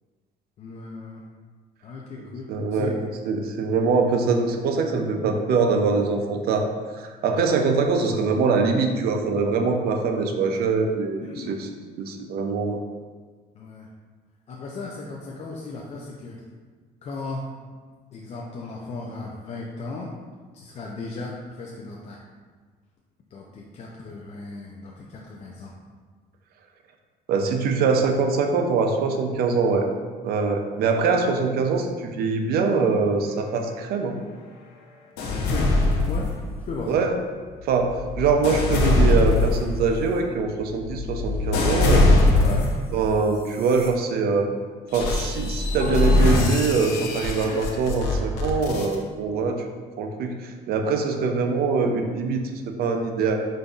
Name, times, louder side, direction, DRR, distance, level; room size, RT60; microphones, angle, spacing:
voice 1, 0.6-1.2 1.8-2.9 11.2-11.6 13.6-13.9 14.5-16.4 17.0-17.4 18.1-20.1 20.5-22.2 23.3-25.7 35.2-36.3 36.6-37.0 42.4-42.7, left 3 dB, 40° left, -2 dB, 0.4 m, -35 dB
voice 2, 2.2-3.0 3.3-6.7 6.9-11.7 12.0-12.8 27.3-29.9 30.2-34.1 36.9-37.1 37.6-42.1 42.9-44.5 44.9-49.6 50.0-53.3, right 4 dB, 65° right, 4 dB, 0.5 m, -23 dB
sound 1, 35.2-36.7 37.4-42.9 43.5-43.9 44.9-49.0, left 2 dB, 80° left, 0.6 m, -22 dB
5.2 x 2.5 x 2.3 m, 1.5 s
cardioid pair, 110°, 17 cm